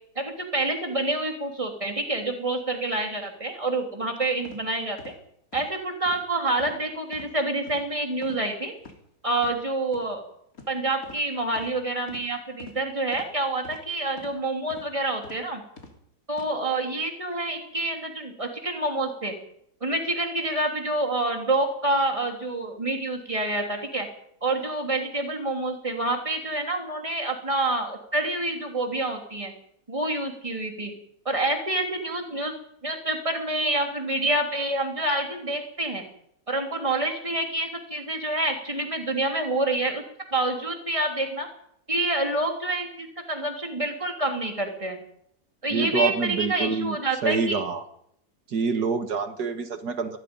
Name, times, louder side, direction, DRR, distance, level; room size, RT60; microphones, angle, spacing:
voice 1, 0.1-5.1 5.5-8.7 9.2-10.2 10.7-15.6 16.3-19.4 19.8-24.1 24.4-29.5 29.9-30.9 31.2-32.5 32.8-36.0 36.5-40.0 40.3-41.5 41.9-45.0 45.6-47.6, right 2 dB, 20° right, 3 dB, 3.4 m, -27 dB
sound 1, 4.4-4.6 5.0-5.1 5.5-5.7 6.1-6.2 6.6-6.8 7.1-7.3 7.7-7.8 8.2-8.4 8.8-9.0 9.4-9.5 9.9-10.1 10.5-10.7 11.0-11.2 11.5-11.7 12.1-12.3 12.6-12.8 13.1-13.3 13.6-13.8 14.2-14.4 14.7-14.9 15.2-15.4 15.8-16.0 16.3-16.5, left 4 dB, 60° left, 3.7 m, -45 dB
voice 2, 45.7-47.8 48.5-50.2, right 5 dB, 75° right, 7 dB, 2.1 m, -27 dB
24.0 x 20.0 x 5.5 m, 0.73 s
omnidirectional pair, 1.7 m